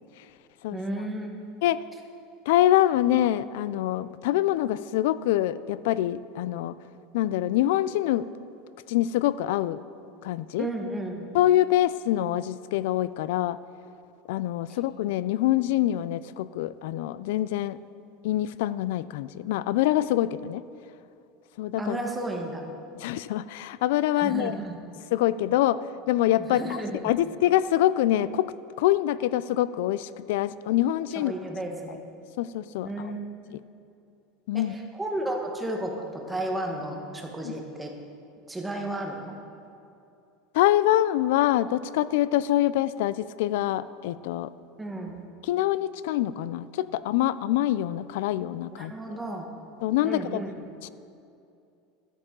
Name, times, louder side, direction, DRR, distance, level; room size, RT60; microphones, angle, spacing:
voice 1, 0.7-1.3 10.6-11.2 21.8-22.6 24.2-24.8 26.5-27.1 31.2-32.0 32.8-33.2 33.5-33.6 34.5-37.9 38.5-39.4 44.8-45.2 48.7-49.5 50.0-50.5, right 1 dB, 5° right, 1 dB, 1.2 m, -33 dB
voice 2, 2.5-6.8 7.1-8.2 8.9-9.8 10.2-10.7 11.3-13.6 14.3-17.8 18.2-20.6 21.6-22.0 23.0-24.6 25.1-25.8 26.1-31.3 32.4-32.9 34.5-34.7 37.4-37.5 40.5-44.5 45.4-48.9 49.8-50.4 50.8-50.9, left 13 dB, 75° left, 17 dB, 0.4 m, -25 dB
13.0 x 12.5 x 3.8 m, 2.6 s
supercardioid pair, 160°, 0 cm